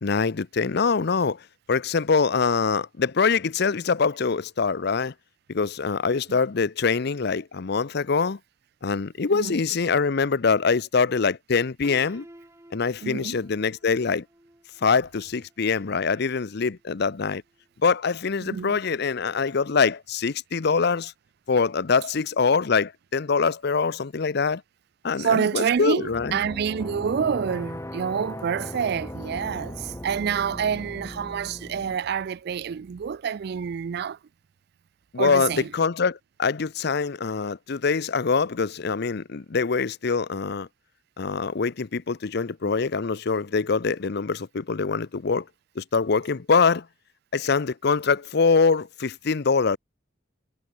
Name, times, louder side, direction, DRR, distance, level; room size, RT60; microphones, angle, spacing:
voice 1, 0.0-1.4 1.7-5.1 5.5-8.4 8.8-12.2 12.7-14.2 14.8-17.4 17.8-21.1 21.5-24.6 25.0-26.4 35.1-40.7 41.2-45.4 45.8-46.9 47.3-49.8, left 5 dB, 60° left, 0.6 m, -24 dB
Piano, 11.8-17.7, right 1 dB, 15° right, 4.5 m, -53 dB
voice 2, 13.0-13.4 18.4-18.8 25.2-34.2 35.2-35.7, right 7 dB, 55° right, 0.4 m, -27 dB
sound 1, 26.0-32.0, left 1 dB, 15° left, 2.9 m, -38 dB
head